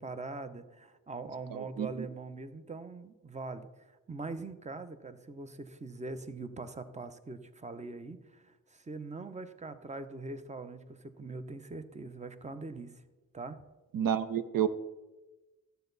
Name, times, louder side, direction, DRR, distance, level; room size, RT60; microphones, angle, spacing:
voice 1, 0.0-13.0 13.3-13.6, right 3 dB, 20° right, 10 dB, 0.8 m, -42 dB
voice 2, 1.5-1.9 13.9-14.7, right 9 dB, 75° right, 12 dB, 0.7 m, -30 dB
12.0 x 8.1 x 4.0 m, 1.1 s
cardioid pair, 65°, 34 cm